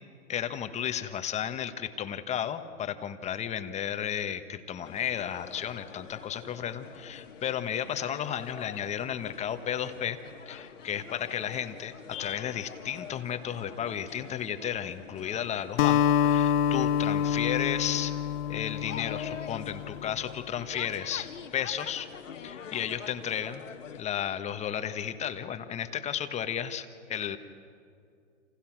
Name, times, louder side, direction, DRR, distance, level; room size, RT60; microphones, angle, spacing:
voice 1, 0.3-10.2 10.5-18.1 18.5-22.1 22.4-27.4, left 9 dB, 20° left, 9 dB, 1.2 m, -33 dB
sound 1, 4.8-24.0, left 7 dB, 80° left, 1.7 m, -45 dB
Acoustic guitar, 15.8-20.3, left 9 dB, 50° left, 0.8 m, -27 dB
28.5 x 28.0 x 6.1 m, 2.4 s
hypercardioid pair, 125°, 37 cm